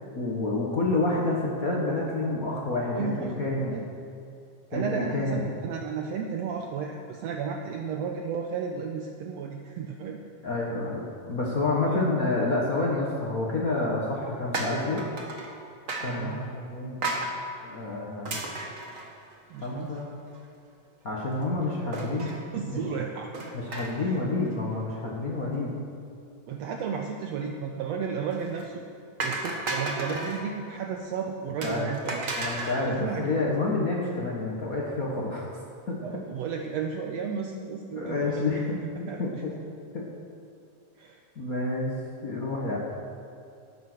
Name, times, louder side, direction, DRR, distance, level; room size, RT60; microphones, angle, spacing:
voice 1, 0.1-3.8 4.7-5.4 10.4-15.0 16.0-17.0 17.6-18.4 19.6-20.1 21.0-22.3 22.7-22.8 23.7-25.7 31.6-31.8 32.4-35.5 35.9-36.0 37.9-39.5 39.9-40.1 41.4-41.9 42.2-42.8, left 2 dB, 70° left, -3 dB, 0.8 m, -28 dB
voice 2, 2.9-3.9 4.7-10.2 11.8-12.0 16.0-16.5 19.5-20.0 21.6-23.3 24.0-24.2 26.5-28.9 29.2-32.4 32.9-33.5 36.0-38.7 39.1-39.4 40.9-41.2, right 6 dB, 80° right, 2 dB, 1.5 m, -34 dB
sound 1, 14.5-15.5 15.9-16.2 17.0-17.3 18.3-19.6 20.0-20.1 20.3-20.4 21.9-22.4 23.3-24.2 24.4-24.8 28.3-28.6 29.2-30.4 31.6-32.9, right 2 dB, 60° right, 0.8 m, -33 dB
14.0 x 9.3 x 6.2 m, 2.5 s
omnidirectional pair, 3.9 m